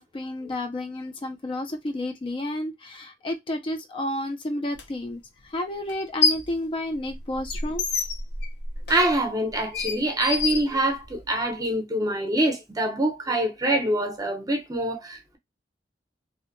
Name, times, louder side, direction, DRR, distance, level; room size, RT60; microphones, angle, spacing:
voice 1, 0.0-5.2 5.5-7.9, left 1 dB, 30° left, 0.4 m, -31 dB
sound 1, 4.7-4.8 5.9-6.6 6.9-11.3, left 5 dB, 65° left, 0.7 m, -28 dB
voice 2, 8.9-15.4, right 1 dB, 20° right, 0.6 m, -25 dB
2.6 x 2.1 x 2.5 m
head